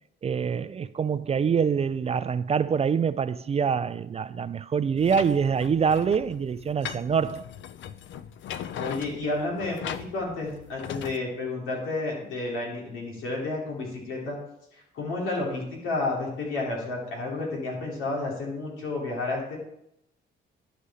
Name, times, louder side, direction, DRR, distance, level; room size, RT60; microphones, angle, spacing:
voice 1, 0.2-7.5, right 6 dB, 30° right, 0.3 m, -25 dB
sound 1, 5.0-11.2, left 9 dB, 70° left, 0.5 m, -39 dB
voice 2, 8.7-14.4 14.7-19.6, left 2 dB, 90° left, 3.0 m, -31 dB
11.5 x 5.1 x 4.2 m
cardioid pair, 90°, 20 cm